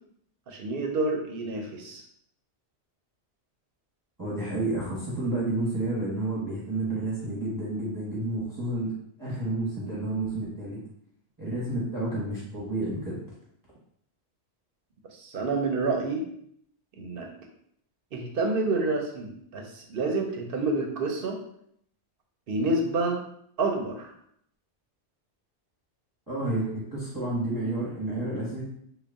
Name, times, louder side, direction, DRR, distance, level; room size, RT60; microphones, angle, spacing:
voice 1, 0.5-2.0 15.2-16.2 17.0-17.3 18.1-21.4 22.5-23.2 23.6-24.1, right 3 dB, 60° right, 2 dB, 0.8 m, -28 dB
voice 2, 4.2-8.9 9.2-10.8 11.4-13.2 26.3-28.6, right 2 dB, 20° right, -7 dB, 1.0 m, -30 dB
3.9 x 2.3 x 3.4 m, 0.68 s
omnidirectional pair, 1.1 m